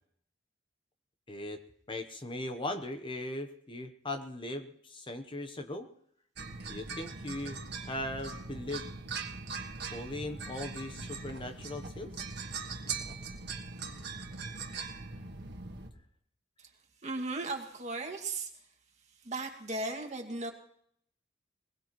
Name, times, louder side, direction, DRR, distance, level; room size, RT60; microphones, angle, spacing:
voice 1, 1.3-1.6 1.9-5.9 6.7-7.6 7.9-8.9 9.9-12.1, left 1 dB, 25° left, 8 dB, 0.9 m, -39 dB
slinky sounds, 6.4-15.9, right 4 dB, 60° right, 1.5 m, -41 dB
voice 2, 17.0-18.5 19.2-20.5, right 2 dB, 35° right, 3 dB, 2.1 m, -36 dB
21.0 x 21.0 x 3.1 m, 0.67 s
head